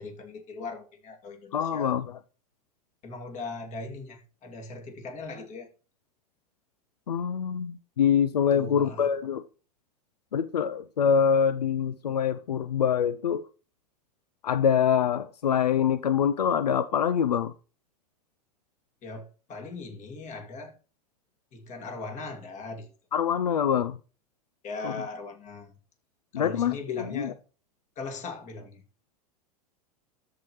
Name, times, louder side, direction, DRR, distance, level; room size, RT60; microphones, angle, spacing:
voice 1, 0.0-1.9 3.0-5.7 8.5-9.1 19.0-20.7 21.5-22.9 24.6-25.7 26.3-27.3 28.0-28.8, left 3 dB, 40° left, 2.6 m, -39 dB
voice 2, 1.5-2.1 7.1-9.4 10.3-13.4 14.4-17.5 23.1-24.0 24.8-24.9 26.3-27.3, left 8 dB, 90° left, 0.5 m, -25 dB
13.5 x 4.8 x 3.1 m
hypercardioid pair, 100°, 20 cm